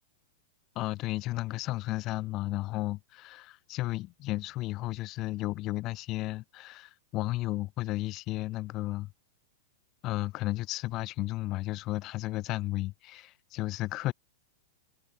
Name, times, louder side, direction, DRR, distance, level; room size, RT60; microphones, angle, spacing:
voice 1, 0.8-9.1 10.0-14.1, left 18 dB, 40° left, 0.3 m, -33 dB
hypercardioid pair, 110°, 0 cm